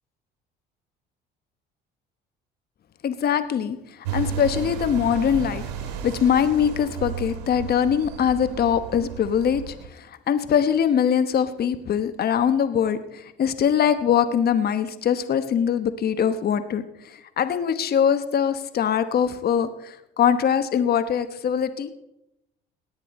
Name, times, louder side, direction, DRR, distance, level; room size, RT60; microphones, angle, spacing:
voice 1, 3.0-3.8 4.1-5.6 6.0-16.8 17.4-21.9, left 8 dB, 50° left, 11 dB, 1.1 m, -22 dB
sound 1, 4.1-9.9, right 8 dB, 90° right, 1.5 m, -33 dB
18.0 x 9.8 x 4.2 m, 0.85 s
supercardioid pair, 75°, 21 cm